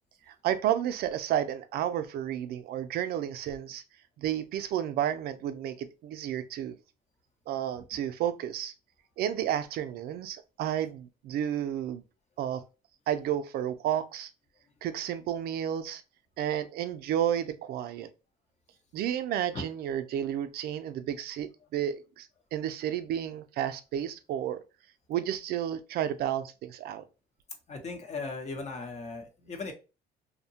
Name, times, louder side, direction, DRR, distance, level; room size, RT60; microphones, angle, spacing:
voice 1, 0.3-3.8 4.2-6.8 7.5-8.7 9.2-12.0 12.4-12.6 13.1-14.3 14.8-16.0 16.4-18.1 18.9-24.6 25.1-27.0, right 10 dB, 70° right, 0.4 m, -31 dB
voice 2, 27.7-29.7, left 3 dB, 40° left, 0.8 m, -37 dB
2.7 x 2.1 x 2.7 m
cardioid pair, 110°, 17 cm